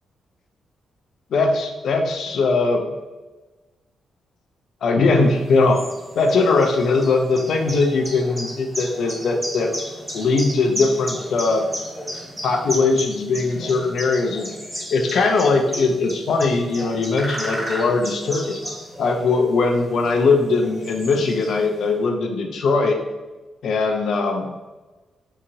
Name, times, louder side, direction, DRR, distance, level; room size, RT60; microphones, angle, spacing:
voice 1, 1.3-2.8 4.8-5.8 6.2-9.7 10.1-11.6 12.4-14.5 14.9-18.6 19.0-23.0 23.6-24.5, left 3 dB, 75° left, 3 dB, 0.4 m, -20 dB
sound 1, 5.3-21.9, equal, 10° right, 0.8 m, -34 dB
2.7 x 2.7 x 2.6 m, 1.2 s
cardioid pair, 75°, 0 cm